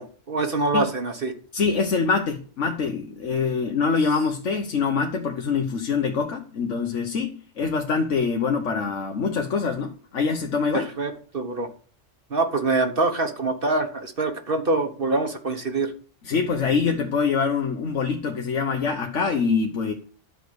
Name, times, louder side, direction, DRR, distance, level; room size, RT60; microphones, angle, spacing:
voice 1, 0.0-1.3 10.7-11.7 12.3-15.9, right 3 dB, 50° right, 1.4 m, -25 dB
voice 2, 1.5-10.9 16.2-19.9, left 5 dB, 80° left, 1.5 m, -24 dB
12.5 x 5.1 x 8.0 m
omnidirectional pair, 1.2 m